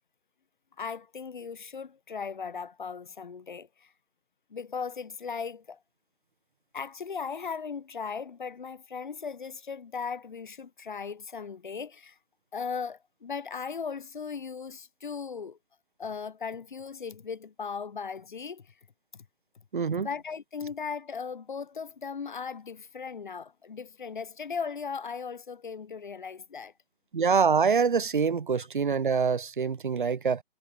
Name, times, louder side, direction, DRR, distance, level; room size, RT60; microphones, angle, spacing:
voice 1, 0.8-3.9 4.5-5.8 6.7-12.2 12.5-15.6 16.0-18.7 19.1-19.2 19.9-26.7 28.5-28.7, left 6 dB, 50° left, 1.5 m, -37 dB
voice 2, 19.7-20.1 27.1-30.4, right 5 dB, 50° right, 1.7 m, -25 dB
hypercardioid pair, 175°, 32 cm